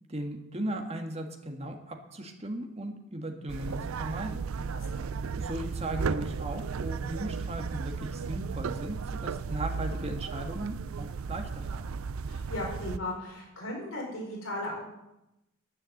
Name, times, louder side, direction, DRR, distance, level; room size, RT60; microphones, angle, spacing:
voice 1, 0.1-4.4 5.1-11.9, right 1 dB, 30° right, 4 dB, 1.7 m, -37 dB
sound 1, 3.5-13.0, right 5 dB, 90° right, 0.5 m, -35 dB
voice 2, 4.7-5.0 12.3-14.8, left 1 dB, 80° left, -1 dB, 4.8 m, -36 dB
10.5 x 10.0 x 7.8 m, 0.90 s
head